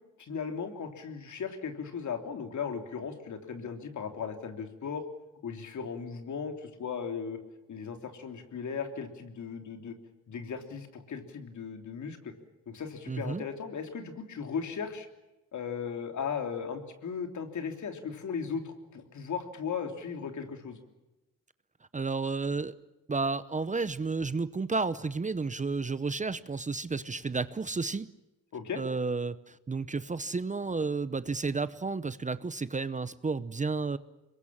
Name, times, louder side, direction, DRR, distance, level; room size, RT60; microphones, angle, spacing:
voice 1, 0.2-5.0 5.4-7.4 7.7-9.9 10.3-12.3 12.7-15.1 15.5-20.8 28.5-28.8, left 6 dB, 65° left, 6 dB, 3.3 m, -37 dB
voice 2, 13.1-13.4 21.9-22.7 23.1-28.1 28.8-34.0, right 4 dB, 25° right, 15 dB, 0.8 m, -32 dB
25.5 x 22.0 x 7.3 m, 1.0 s
cardioid pair, 95°, 32 cm